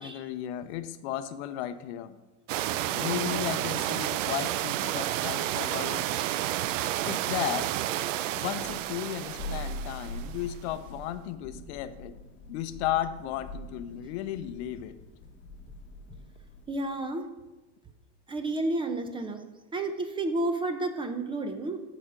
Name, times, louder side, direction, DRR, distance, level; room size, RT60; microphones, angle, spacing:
voice 1, 0.0-2.2 2.9-6.0 7.0-7.7 8.3-12.2 12.5-15.0, left 12 dB, 60° left, 12 dB, 0.6 m, -34 dB
sound 1, 2.5-10.5, right 13 dB, 80° right, 0.5 m, -31 dB
Thunder, 8.4-16.8, equal, 30° left, 1.1 m, -43 dB
voice 2, 16.7-17.3 18.3-19.4 19.7-21.8, right 2 dB, 15° right, 8 dB, 0.5 m, -31 dB
13.5 x 5.0 x 3.8 m, 1.1 s
supercardioid pair, 125°, 37 cm